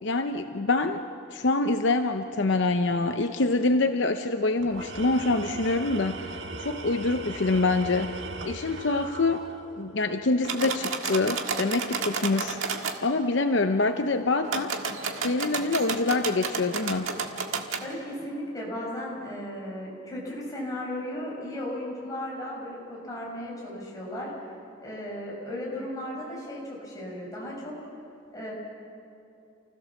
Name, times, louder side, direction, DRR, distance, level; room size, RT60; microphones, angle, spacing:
voice 1, 0.0-1.0 1.3-9.4 9.8-12.6 13.0-14.7 15.2-17.1, left 3 dB, 65° left, 7 dB, 0.7 m, -25 dB
Tools, 4.6-10.0, right 3 dB, 70° right, 1.5 m, -38 dB
sound 1, 10.4-13.0 14.4-17.9, right 5 dB, 85° right, 1.7 m, -31 dB
voice 2, 17.8-24.3 24.8-27.7 28.3-28.5, left 1 dB, 15° left, -4 dB, 5.8 m, -35 dB
29.0 x 16.0 x 7.1 m, 2.6 s
head